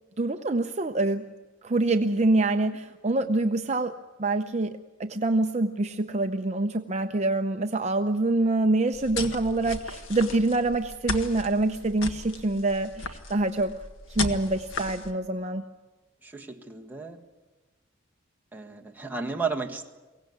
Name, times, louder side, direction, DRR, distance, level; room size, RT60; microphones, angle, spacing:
voice 1, 0.2-1.2 1.6-13.7 14.2-15.6, right 2 dB, 35° right, 6 dB, 0.7 m, -25 dB
sound 1, 8.9-15.1, left 3 dB, 70° left, 1.7 m, -36 dB
voice 2, 16.2-17.2 18.5-19.9, right 4 dB, 10° right, 2 dB, 1.6 m, -33 dB
23.5 x 17.5 x 9.4 m, 1.2 s
head